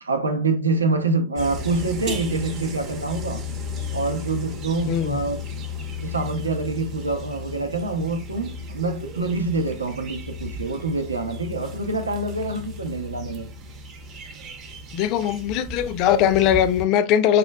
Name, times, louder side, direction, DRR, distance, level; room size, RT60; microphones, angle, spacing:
voice 1, 0.0-3.4 3.9-5.4 6.0-13.5, right 3 dB, 75° right, 0.6 m, -26 dB
sound 1, 1.4-16.8, left 3 dB, 35° right, 0.6 m, -35 dB
voice 2, 14.9-17.4, left 10 dB, 40° left, 0.4 m, -20 dB
5.2 x 2.3 x 2.2 m
figure-of-eight pair, 90°, 0 cm